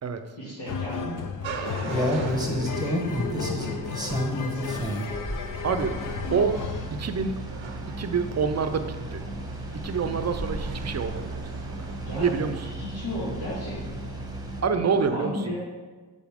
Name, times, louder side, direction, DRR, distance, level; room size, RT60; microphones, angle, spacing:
voice 1, 0.4-5.3 12.0-14.1 14.7-15.6, left 1 dB, 80° left, -8 dB, 1.7 m, -36 dB
sound 1, 0.7-6.9, left 7 dB, 45° left, 0.5 m, -34 dB
sound 2, 1.4-12.7, right 6 dB, 90° right, 0.7 m, -43 dB
sound 3, 1.5-14.6, equal, 10° right, 1.0 m, -32 dB
voice 2, 5.6-6.0 6.3-6.6 6.9-7.4 7.9-9.2 9.7-12.6 14.6-15.4, right 5 dB, 35° right, 9 dB, 0.6 m, -27 dB
7.2 x 4.2 x 3.6 m, 1.3 s
cardioid pair, 55°, 45 cm